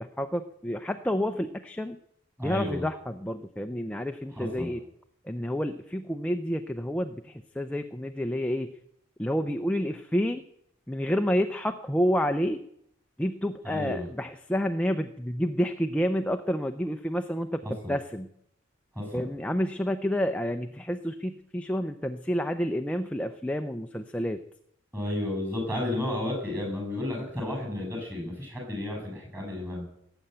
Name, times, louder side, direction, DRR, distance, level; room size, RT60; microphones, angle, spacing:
voice 1, 0.0-2.0 2.4-4.8 5.2-8.7 9.2-10.5 10.9-12.6 13.2-17.6 17.9-18.3 19.1-24.4, equal, 5° left, 7 dB, 0.6 m, -29 dB
voice 2, 2.4-2.8 4.4-4.7 13.6-14.1 17.6-17.9 18.9-19.2 24.9-29.8, left 1 dB, 10° right, 1 dB, 6.6 m, -32 dB
18.0 x 8.0 x 9.0 m, 0.74 s
head